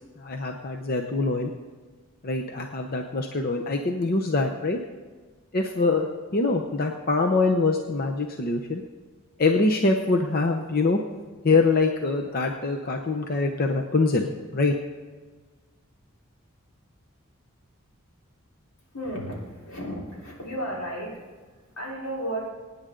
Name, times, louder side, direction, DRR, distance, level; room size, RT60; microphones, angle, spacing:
voice 1, 0.2-1.5 2.2-4.8 5.5-6.1 6.3-8.8 9.4-11.0 11.4-14.7, left 3 dB, 45° left, 3 dB, 0.7 m, -24 dB
voice 2, 18.9-22.5, right 1 dB, 80° left, -4 dB, 3.9 m, -34 dB
23.5 x 9.6 x 3.8 m, 1.4 s
head